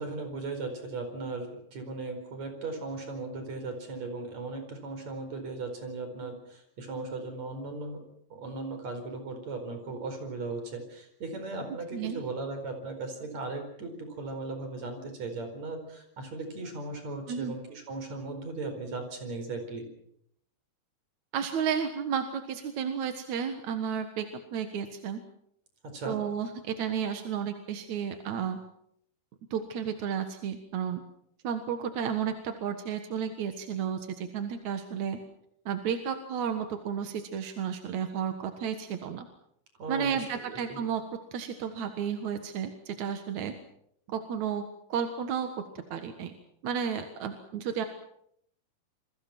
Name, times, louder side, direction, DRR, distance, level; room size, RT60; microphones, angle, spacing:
voice 1, 0.0-8.0 8.3-19.9 25.8-26.2 39.8-40.8, right 3 dB, 40° right, 6 dB, 5.6 m, -37 dB
voice 2, 11.9-12.2 17.3-17.5 21.3-25.2 26.1-28.6 29.5-31.0 31.4-35.2 35.7-39.3 39.9-41.0 41.3-43.5 44.1-45.5 45.9-46.3 46.6-47.8, right 7 dB, 55° right, 7 dB, 2.3 m, -32 dB
28.5 x 22.5 x 6.1 m, 0.72 s
omnidirectional pair, 4.8 m